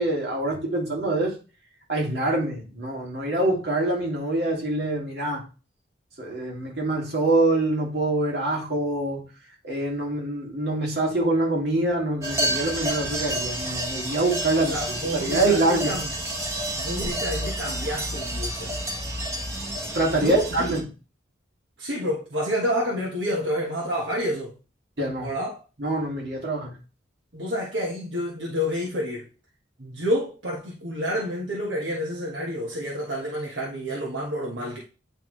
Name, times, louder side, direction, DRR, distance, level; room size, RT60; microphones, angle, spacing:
voice 1, 0.0-1.3 1.9-5.4 6.2-9.2 9.6-15.9 19.9-20.9 25.0-25.3 25.8-26.7, right 2 dB, 60° right, 2.3 m, -25 dB
sound 1, 12.2-20.8, right 1 dB, 15° right, 1.1 m, -30 dB
voice 2, 14.6-16.1 16.7-18.8 20.1-20.7 21.8-24.5 25.2-25.6 27.3-29.3 29.8-34.8, equal, 85° right, 1.3 m, -29 dB
9.1 x 3.5 x 3.2 m
head